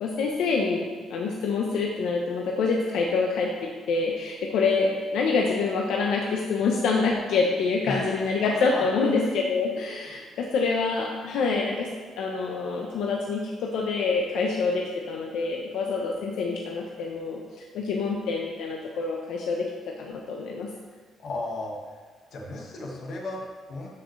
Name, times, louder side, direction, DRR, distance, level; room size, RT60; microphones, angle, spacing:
voice 1, 0.0-11.9 12.2-17.4 17.7-19.7 20.0-20.7, left 4 dB, 85° left, -1 dB, 0.9 m, -26 dB
voice 2, 7.9-8.9 10.0-10.1 21.2-21.8 22.3-23.9, left 2 dB, 55° left, -1 dB, 1.7 m, -34 dB
13.0 x 5.8 x 3.3 m, 1.4 s
cardioid pair, 150°, 0 cm